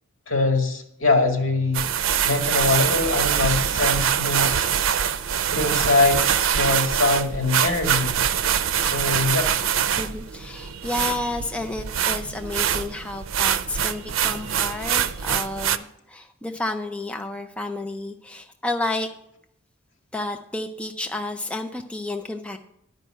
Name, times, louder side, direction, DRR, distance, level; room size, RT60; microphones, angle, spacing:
voice 1, 0.3-1.9 2.2-4.7 5.5-8.2 8.8-9.5, left 3 dB, 75° left, 3 dB, 2.0 m, -23 dB
sound 1, 1.7-15.8, right 9 dB, 85° right, 0.5 m, -24 dB
voice 2, 10.0-19.1 20.1-22.6, left 2 dB, 5° left, 5 dB, 0.5 m, -31 dB
11.0 x 5.4 x 7.6 m, 0.75 s
head